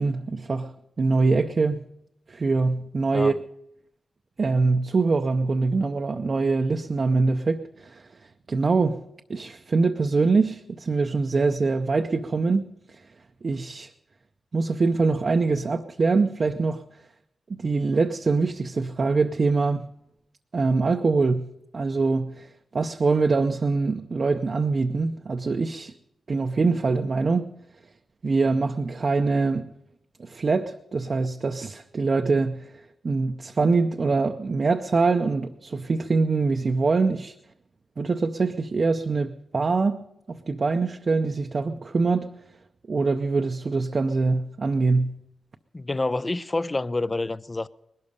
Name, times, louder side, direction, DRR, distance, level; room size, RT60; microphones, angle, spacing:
voice 1, 0.0-1.8 2.3-3.4 4.4-8.0 8.5-9.0 9.3-12.7 13.4-13.9 14.5-16.8 17.5-19.9 20.5-25.9 26.3-27.5 28.2-29.7 30.2-32.7 33.0-37.3 38.0-40.0 40.3-42.3 42.9-45.2, right 3 dB, 50° right, 0.6 m, -24 dB
voice 2, 45.7-47.7, left 2 dB, 30° left, 0.5 m, -27 dB
20.0 x 12.0 x 5.3 m
cardioid pair, 75°, 0 cm